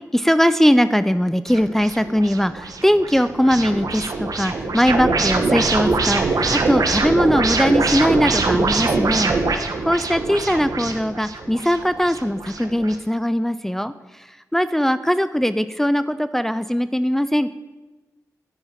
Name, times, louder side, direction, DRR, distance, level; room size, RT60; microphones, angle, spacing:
voice 1, 0.1-17.5, equal, 5° left, 12 dB, 0.4 m, -20 dB
sound 1, 1.5-13.0, right 3 dB, 65° right, 1.2 m, -23 dB
9.8 x 9.6 x 5.8 m, 1.2 s
cardioid pair, 65°, 7 cm